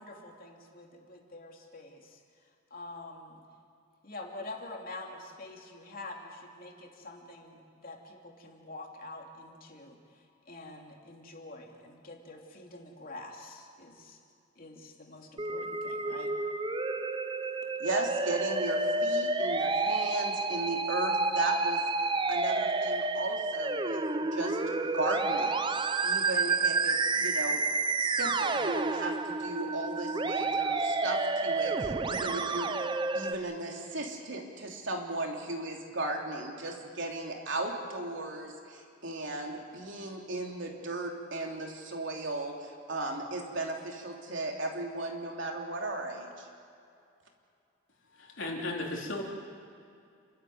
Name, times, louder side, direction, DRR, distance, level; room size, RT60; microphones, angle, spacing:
voice 1, 0.0-2.2 2.7-3.4 4.0-14.2 14.6-16.3, left 2 dB, 45° left, 1 dB, 2.9 m, -46 dB
Musical instrument, 15.4-33.3, right 3 dB, 25° right, 0.7 m, -30 dB
voice 2, 17.8-21.8 22.3-24.0 24.3-27.6 28.0-32.7 33.1-46.5, right 2 dB, 65° right, 1 dB, 3.2 m, -36 dB
voice 3, 48.1-49.2, left 2 dB, 70° left, -1 dB, 3.8 m, -35 dB
29.0 x 13.0 x 9.5 m, 2.5 s
head